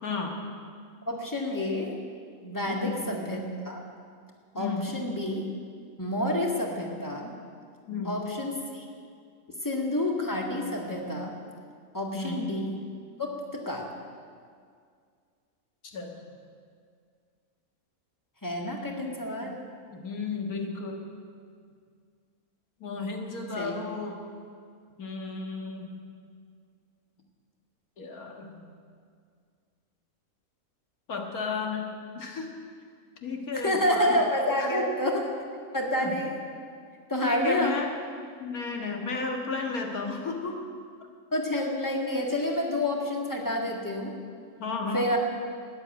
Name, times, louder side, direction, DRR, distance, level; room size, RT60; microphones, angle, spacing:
voice 1, 0.0-0.4 2.7-3.0 4.5-5.0 7.9-8.2 12.1-12.5 15.8-16.2 19.4-19.5 19.9-21.1 22.8-24.2 25.0-25.9 28.0-28.6 31.1-31.9 32.1-32.5 33.2-34.2 34.6-34.9 36.0-36.2 37.2-37.9 38.4-40.6 44.6-45.1, left 4 dB, 80° left, 2 dB, 2.1 m, -33 dB
voice 2, 1.1-1.9 2.4-3.8 4.6-5.5 6.0-7.3 8.0-8.9 9.6-11.4 11.9-12.7 13.2-13.9 18.4-19.6 23.6-23.7 33.6-35.3 35.7-36.3 37.1-37.7 41.3-44.1 44.9-45.2, left 1 dB, 15° left, 0 dB, 1.8 m, -29 dB
13.0 x 9.6 x 8.9 m, 2.2 s
omnidirectional pair, 1.5 m